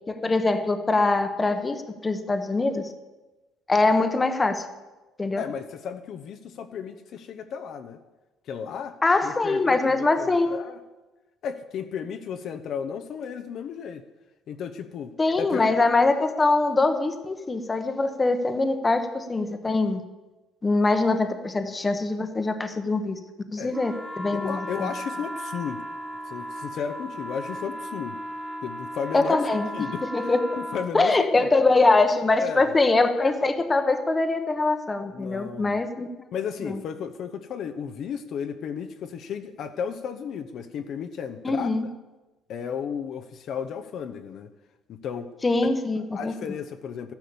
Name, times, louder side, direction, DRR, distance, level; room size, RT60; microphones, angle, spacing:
voice 1, 0.1-2.8 3.7-4.7 5.2-5.4 9.0-10.6 15.2-20.0 20.6-23.2 23.5-24.9 29.1-29.7 30.1-30.4 30.9-36.1 36.7-36.8 41.4-41.9 45.4-46.3, left 3 dB, 15° left, 8 dB, 1.1 m, -23 dB
voice 2, 5.4-8.0 8.5-10.8 11.4-14.0 14.5-15.7 23.6-23.8 24.3-25.8 26.3-28.2 28.6-29.4 29.7-31.5 32.4-32.7 35.1-35.8 36.3-41.7 42.5-44.5 44.9-45.3 46.1-47.1, left 7 dB, 50° left, 8 dB, 0.9 m, -34 dB
sound 1, 23.7-30.9, equal, 10° right, 1.8 m, -36 dB
13.5 x 10.5 x 7.0 m, 1.1 s
cardioid pair, 155°, 0 cm